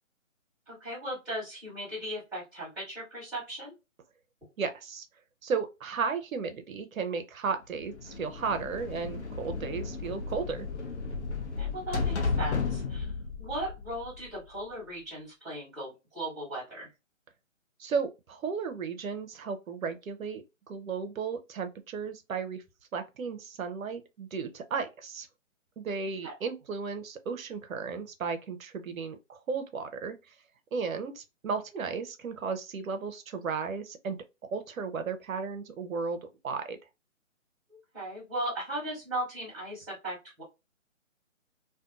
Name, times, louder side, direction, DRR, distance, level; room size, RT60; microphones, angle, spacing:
voice 1, 0.7-3.7 11.6-13.1 13.4-16.9 26.2-26.3 37.7-40.4, right 1 dB, ahead, 1.3 m, -37 dB
voice 2, 4.6-5.1 5.4-10.7 17.8-22.6 22.9-25.3 25.8-30.3 30.7-34.2 34.5-36.8, right 5 dB, 90° right, 0.6 m, -34 dB
sound 1, 7.8-14.6, left 4 dB, 55° left, 0.7 m, -34 dB
2.6 x 2.2 x 2.4 m
hypercardioid pair, 160°, 40 cm